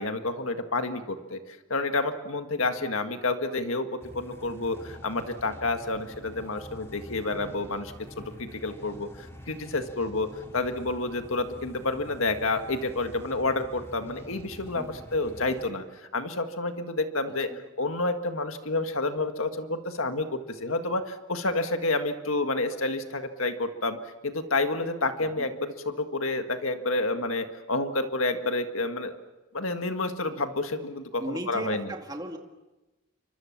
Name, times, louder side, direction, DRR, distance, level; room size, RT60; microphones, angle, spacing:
voice 1, 0.0-1.4 1.7-15.8 16.1-17.5 17.8-24.0 24.2-29.1 29.5-31.8, left 2 dB, 85° left, 7 dB, 1.8 m, -29 dB
sound 1, 4.0-15.7, equal, 15° left, 2.8 m, -46 dB
voice 2, 17.3-17.6 25.2-25.5 31.2-32.4, right 1 dB, 20° right, 3 dB, 2.2 m, -37 dB
29.5 x 25.0 x 7.4 m, 1.1 s
head